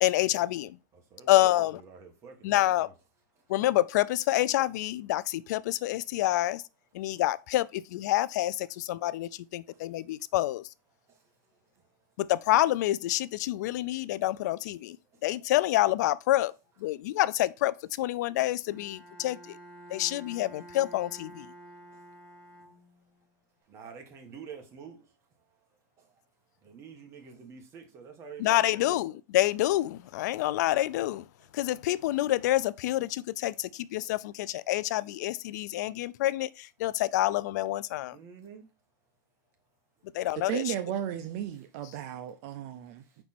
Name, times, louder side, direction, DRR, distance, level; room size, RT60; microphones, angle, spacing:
voice 1, 0.0-0.8 1.3-1.8 2.4-2.9 3.5-6.6 6.9-10.7 12.2-15.0 15.2-16.5 16.8-19.6 19.9-21.5 28.4-31.3 31.5-38.2 40.1-40.7, left 15 dB, 65° left, 0.4 m, -27 dB
voice 2, 1.6-2.9 7.0-7.2 9.7-9.8 11.1-11.8 15.1-15.2 21.9-22.0 23.7-25.0 26.0-26.2 26.6-29.0 38.1-38.6 40.0-40.2 41.5-41.6 43.1-43.2, right 6 dB, 25° right, 1.5 m, -49 dB
Bowed string instrument, 18.7-23.2, right 1 dB, 25° left, 1.9 m, -50 dB
voice 3, 40.5-43.0, right 11 dB, 50° right, 0.6 m, -34 dB
5.1 x 4.4 x 4.3 m
supercardioid pair, 150°, 10 cm